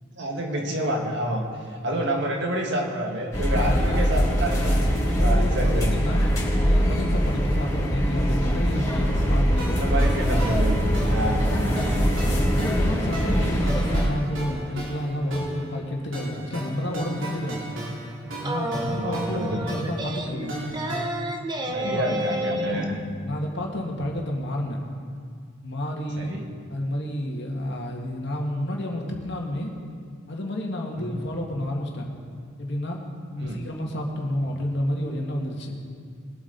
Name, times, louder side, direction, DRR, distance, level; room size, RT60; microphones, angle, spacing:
voice 1, 0.2-1.4 1.7-4.8 5.2-5.9 9.7-12.1 13.2-13.5 18.8-19.6 21.7-23.0 26.2-26.5 31.0-31.2 33.4-33.6, right 1 dB, 60° right, 1 dB, 1.8 m, -29 dB
sound 1, 3.3-14.1, equal, 20° left, 4.1 m, -22 dB
voice 2, 3.5-4.0 5.1-6.3 6.6-9.9 11.2-11.5 12.4-17.6 18.4-20.7 21.7-22.9 23.2-24.8 25.6-26.4 26.7-29.7 30.3-32.1 32.6-33.0 33.3-35.8, left 1 dB, 60° left, 0 dB, 2.0 m, -30 dB
sound 2, 9.6-21.0, right 1 dB, 80° right, 2.7 m, -35 dB
sound 3, 18.4-22.9, right 1 dB, 20° right, 0.8 m, -30 dB
21.5 x 8.3 x 4.1 m, 2.1 s
head